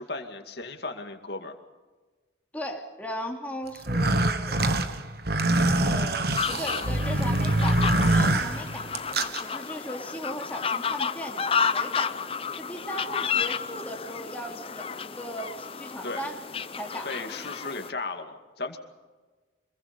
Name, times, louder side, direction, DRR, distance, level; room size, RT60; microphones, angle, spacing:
voice 1, 0.0-1.6 16.0-16.2 17.0-18.8, left 3 dB, 60° left, 5 dB, 2.4 m, -35 dB
voice 2, 2.5-5.0 5.8-8.9 9.4-12.2 12.5-16.3 16.7-17.1, equal, 10° left, 0 dB, 3.0 m, -38 dB
sound 1, 3.8-9.4, right 2 dB, 55° right, 1.4 m, -24 dB
sound 2, 6.4-17.9, left 6 dB, 30° left, 0.6 m, -31 dB
26.5 x 22.0 x 5.4 m, 1.3 s
head